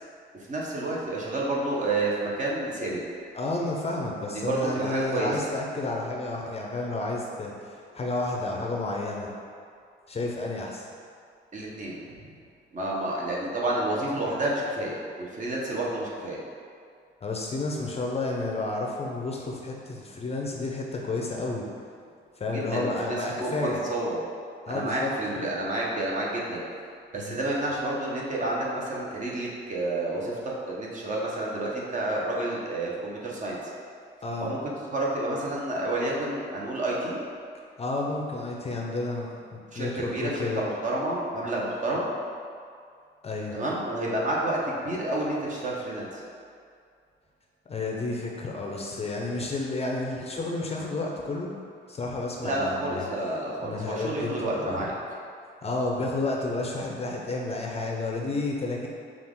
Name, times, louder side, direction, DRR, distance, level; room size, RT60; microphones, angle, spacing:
voice 1, 0.3-3.0 4.3-5.5 11.5-12.0 12.7-16.4 22.5-24.2 24.7-26.7 27.1-30.4 30.7-33.6 34.4-37.2 39.7-42.1 43.5-46.2 52.4-54.9, right 1 dB, 40° right, -4 dB, 1.0 m, -29 dB
voice 2, 3.3-9.3 10.1-10.9 17.2-21.7 22.4-23.8 24.7-25.1 27.1-27.4 34.2-34.5 37.8-39.4 39.8-40.6 43.2-43.6 47.7-51.5 51.9-53.0 53.6-54.8 55.6-58.9, left 2 dB, 30° left, -1 dB, 0.6 m, -31 dB
5.7 x 2.5 x 3.6 m, 2.3 s
cardioid pair, 90°, 20 cm